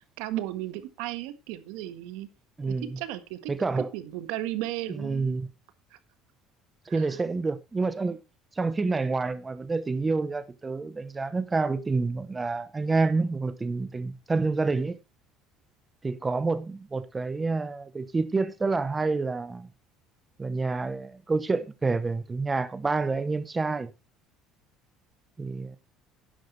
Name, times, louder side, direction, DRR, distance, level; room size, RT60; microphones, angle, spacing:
voice 1, 0.2-2.3 2.6-3.5 3.8-5.4 6.9-7.1, right 14 dB, 90° right, 1.5 m, -35 dB
voice 2, 2.6-3.0 3.5-3.9 4.9-5.5 6.9-8.2 8.6-15.0 16.0-19.7 20.4-23.9 25.4-25.8, right 3 dB, 15° right, 0.9 m, -28 dB
12.0 x 10.0 x 3.3 m
cardioid pair, 170°, 0 cm